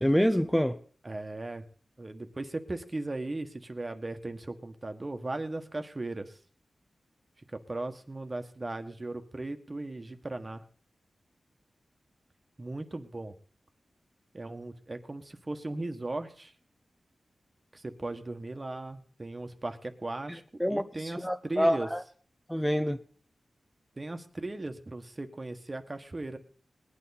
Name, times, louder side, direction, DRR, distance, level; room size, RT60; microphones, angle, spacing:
voice 1, 0.0-0.8 20.6-20.9 21.2-22.0 22.5-23.0, equal, 5° left, 0.8 m, -26 dB
voice 2, 1.0-1.6 2.0-6.4 7.5-10.6 12.6-13.3 14.3-16.5 17.7-21.9 24.0-26.4, right 2 dB, 35° right, 1.5 m, -37 dB
20.0 x 9.4 x 4.2 m
cardioid pair, 60°, 0 cm